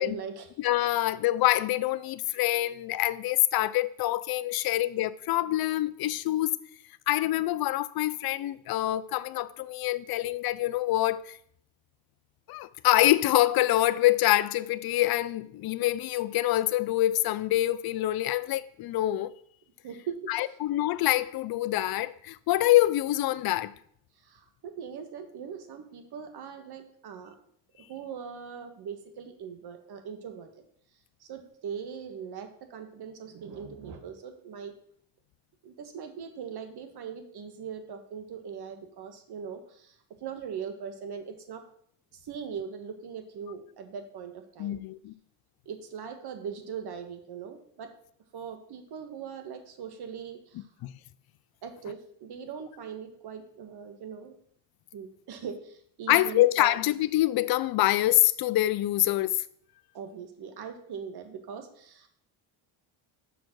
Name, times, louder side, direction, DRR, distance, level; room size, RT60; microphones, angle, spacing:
voice 1, 0.0-0.5 4.5-4.7 19.8-20.2 24.2-27.3 27.9-30.5 31.2-34.7 35.6-39.9 40.2-41.6 42.1-44.8 45.6-47.9 48.3-50.7 51.6-54.3 54.9-56.8 59.9-62.1, right 7 dB, 55° right, 1.5 m, -40 dB
voice 2, 0.6-6.6 7.1-11.4 12.5-19.3 20.3-23.7 44.6-45.1 50.8-50.9 56.1-59.4, left 15 dB, 50° left, 0.5 m, -25 dB
5.9 x 5.0 x 6.1 m
cardioid pair, 90°, 47 cm